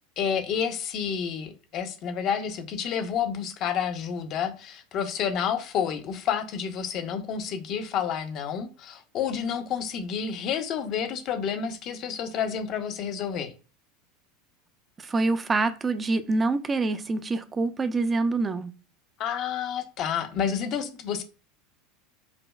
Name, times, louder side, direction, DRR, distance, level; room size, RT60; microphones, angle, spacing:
voice 1, 0.2-13.5 19.2-21.2, left 7 dB, 50° left, 0.6 m, -29 dB
voice 2, 15.0-18.7, right 3 dB, 20° right, 0.4 m, -26 dB
4.9 x 2.2 x 2.2 m
hypercardioid pair, 100°, 0 cm